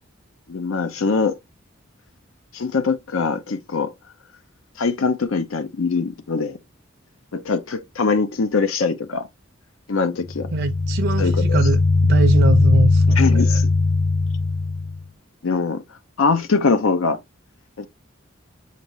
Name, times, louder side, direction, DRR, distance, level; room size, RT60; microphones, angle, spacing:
voice 1, 0.5-1.4 2.5-3.9 4.8-6.6 7.3-9.3 9.9-10.5 11.2-11.7 13.1-13.7 15.4-15.8 16.2-17.2 17.8-17.9, left 4 dB, 90° left, 0.6 m, -22 dB
sound 1, 10.3-15.0, left 3 dB, 5° left, 0.5 m, -18 dB
voice 2, 10.5-13.4, right 3 dB, 55° right, 0.4 m, -22 dB
6.7 x 2.5 x 3.0 m
head